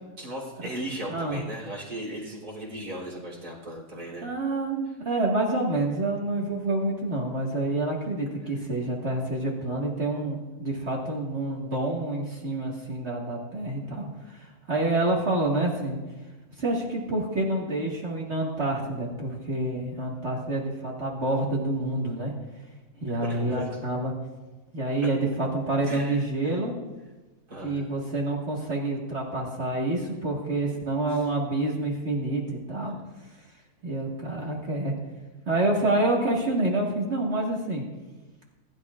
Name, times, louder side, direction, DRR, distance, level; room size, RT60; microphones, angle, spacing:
voice 1, 0.2-4.3 23.2-23.7 25.8-26.6 27.5-27.8 31.1-31.3 32.9-33.0, right 1 dB, 75° right, -4 dB, 3.9 m, -37 dB
voice 2, 1.1-1.4 4.2-16.0 16.6-22.3 23.0-24.1 24.7-26.7 27.6-32.4 32.7-33.0 33.8-34.9 35.5-37.8, right 2 dB, 45° right, -3 dB, 2.0 m, -28 dB
21.0 x 11.5 x 2.5 m, 1.2 s
omnidirectional pair, 1.7 m